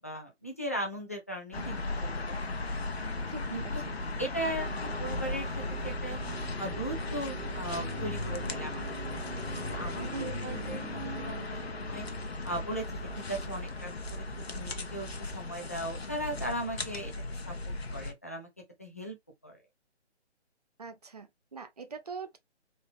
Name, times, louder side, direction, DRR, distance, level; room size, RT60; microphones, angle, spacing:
voice 1, 0.0-2.4 3.5-3.8 4.2-6.2 6.6-12.1 12.4-17.1 17.5-18.5 18.8-19.2 19.4-19.6, right 1 dB, 15° left, 0.5 m, -38 dB
sound 1, 1.5-18.1, left 2 dB, 65° left, 0.9 m, -36 dB
voice 2, 3.3-4.0 10.1-10.8 20.8-22.4, right 5 dB, 35° right, 0.6 m, -43 dB
sound 2, 4.6-13.0, right 5 dB, 60° right, 0.9 m, -45 dB
3.8 x 2.8 x 3.5 m
figure-of-eight pair, 145°, 34 cm